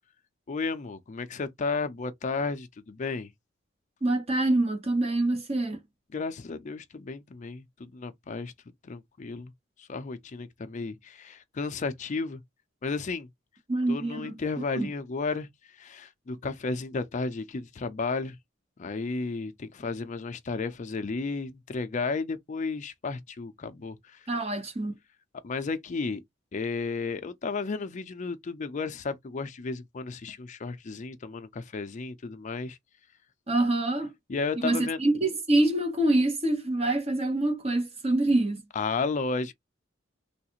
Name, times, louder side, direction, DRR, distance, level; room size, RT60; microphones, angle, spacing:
voice 1, 0.5-3.3 6.1-8.5 8.8-9.5 9.8-12.4 12.8-13.3 13.9-15.5 15.8-18.4 18.8-24.2 25.4-26.2 26.5-32.8 34.3-35.0 38.8-39.5, left 4 dB, 40° left, 0.4 m, -33 dB
voice 2, 4.0-5.8 13.7-14.4 14.8-14.9 24.3-24.9 33.5-34.1 34.6-38.6, right 2 dB, 35° right, 0.8 m, -25 dB
3.4 x 2.4 x 2.8 m
head